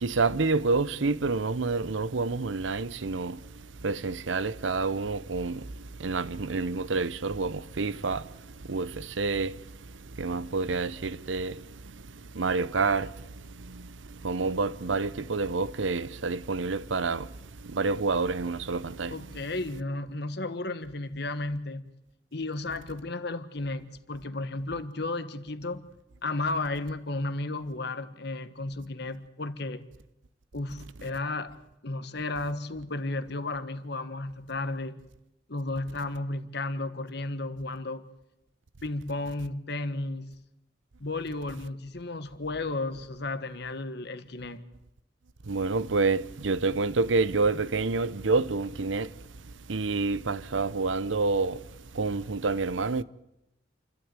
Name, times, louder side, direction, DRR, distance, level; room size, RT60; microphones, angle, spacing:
voice 1, 0.0-3.4 3.8-5.6 6.0-8.2 8.7-9.6 10.2-11.6 12.3-13.1 13.7-13.8 14.2-17.3 17.7-19.2 45.5-49.1 49.7-51.6 52.0-53.0, right 3 dB, 85° right, 0.8 m, -28 dB
voice 2, 19.1-21.9 22.3-25.9 26.2-29.8 30.5-31.6 31.8-35.0 35.5-38.1 38.8-40.3 41.0-44.6, left 2 dB, 60° left, 1.4 m, -33 dB
28.5 x 12.5 x 9.0 m
head